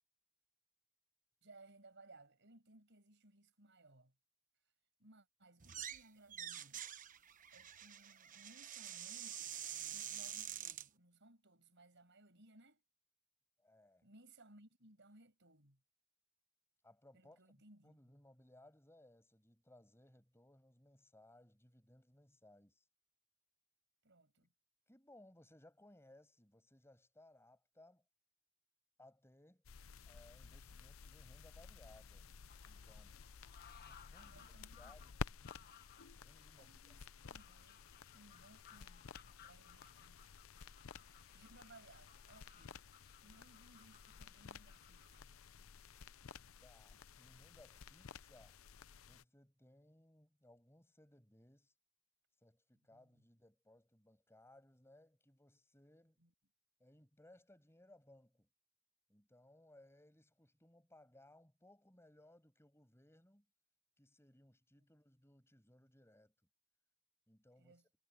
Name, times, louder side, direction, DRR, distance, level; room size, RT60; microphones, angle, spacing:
voice 1, 1.4-4.1 5.0-7.0 7.5-9.6 9.9-12.8 14.0-15.8 17.1-18.0 24.0-24.5 34.2-35.1 36.6-37.9 38.1-39.1 39.4-40.2 41.3-42.8 43.2-45.3 52.9-53.2 56.2-56.3 67.6-67.8, right 2 dB, 60° right, 6.3 m, -64 dB
sound 1, 5.6-6.0 6.3-10.9, right 10 dB, 40° right, 1.0 m, -47 dB
voice 2, 13.6-14.1 16.8-22.9 24.9-28.0 29.0-29.6 30.0-32.3 32.7-33.1 33.9-35.2 36.0-36.8 46.6-48.6 49.1-51.7 52.4-56.2 56.8-58.5 59.1-63.5 64.0-66.3 67.3-67.8, left 1 dB, 15° left, 6.3 m, -65 dB
sound 2, 29.6-49.2, left 5 dB, 85° left, 0.6 m, -53 dB
sound 3, 32.5-45.2, left 7 dB, 50° left, 1.4 m, -64 dB
head